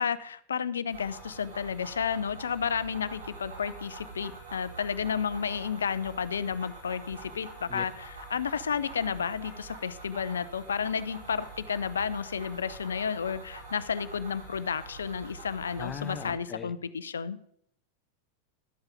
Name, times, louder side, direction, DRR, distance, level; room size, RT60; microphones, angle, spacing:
voice 1, 0.0-17.5, left 7 dB, 70° left, 16 dB, 0.6 m, -32 dB
sound 1, 0.9-16.3, right 3 dB, 60° right, 5.4 m, -45 dB
voice 2, 15.8-16.7, left 8 dB, 25° left, 13 dB, 0.7 m, -39 dB
12.0 x 8.0 x 5.2 m, 0.71 s
figure-of-eight pair, 90°, 0 cm